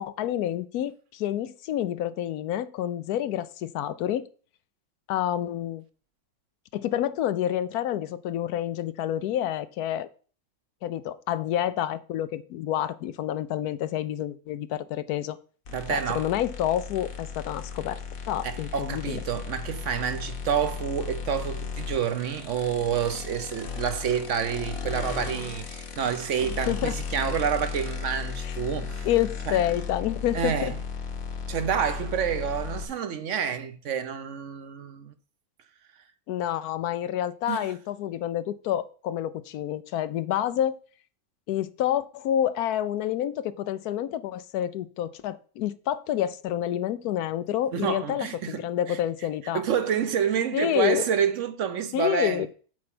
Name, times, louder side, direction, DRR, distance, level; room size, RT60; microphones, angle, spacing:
voice 1, 0.0-4.2 5.1-5.8 6.7-10.1 10.8-15.4 15.9-18.0 18.3-19.2 26.7-26.9 28.4-28.5 29.0-30.7 36.3-40.7 41.5-49.6 50.5-51.0 51.9-52.5, left 11 dB, 90° left, 1.1 m, -28 dB
sound 1, 15.7-32.9, left 6 dB, 70° left, 1.5 m, -35 dB
voice 2, 15.7-16.3 18.4-29.1 29.5-29.6 30.3-30.7 31.5-35.1 37.5-37.7 47.7-49.0 49.5-52.5, right 7 dB, 60° right, 1.0 m, -28 dB
7.6 x 4.5 x 5.9 m
omnidirectional pair, 1.6 m